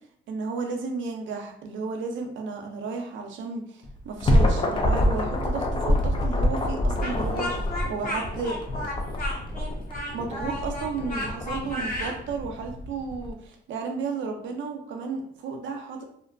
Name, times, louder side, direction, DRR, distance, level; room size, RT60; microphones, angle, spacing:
voice 1, 0.3-8.6 9.6-9.7 10.0-16.0, right 4 dB, 75° right, 3 dB, 0.5 m, -33 dB
sound 1, 3.8-13.3, left 1 dB, 25° left, 0.4 m, -26 dB
Speech, 7.0-12.2, left 1 dB, 45° left, 1.0 m, -33 dB
2.5 x 2.2 x 2.5 m, 0.67 s
cardioid pair, 90°, 20 cm